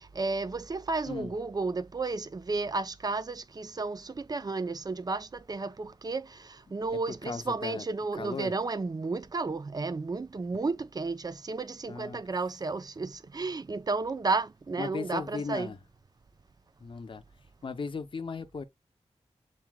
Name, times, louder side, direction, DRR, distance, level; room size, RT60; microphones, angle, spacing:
voice 1, 0.2-6.2 6.7-15.7, right 3 dB, 35° right, 0.5 m, -32 dB
voice 2, 6.9-7.9 8.1-8.6 11.9-12.2 14.8-15.8 16.8-17.2 17.6-18.6, left 4 dB, 50° left, 0.6 m, -37 dB
7.2 x 2.7 x 2.2 m
wide cardioid pair, 70°, 11 cm